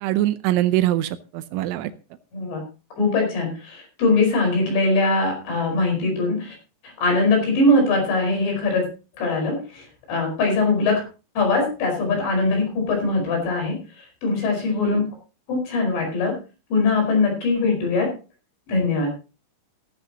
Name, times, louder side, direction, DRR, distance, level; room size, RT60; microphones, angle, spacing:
voice 1, 0.0-1.9 14.7-15.0, right 14 dB, 85° right, 11 dB, 3.2 m, -23 dB
voice 2, 3.0-6.6 6.8-8.9 9.2-11.0 11.4-15.1 15.5-16.4 16.7-18.1 18.7-19.1, left 3 dB, 65° left, 2 dB, 7.2 m, -22 dB
15.0 x 14.0 x 2.9 m, 0.32 s
omnidirectional pair, 5.5 m